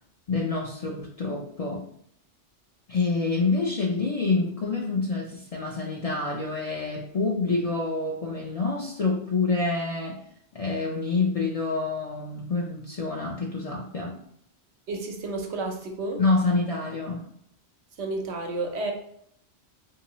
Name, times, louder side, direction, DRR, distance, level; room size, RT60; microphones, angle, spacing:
voice 1, 0.3-1.8 2.9-10.2 10.5-14.2 16.2-17.2, left 3 dB, 50° left, -1 dB, 0.4 m, -27 dB
voice 2, 14.9-16.2 18.0-18.9, right 2 dB, 85° right, 3 dB, 1.0 m, -31 dB
3.5 x 2.8 x 2.9 m, 0.67 s
omnidirectional pair, 1.1 m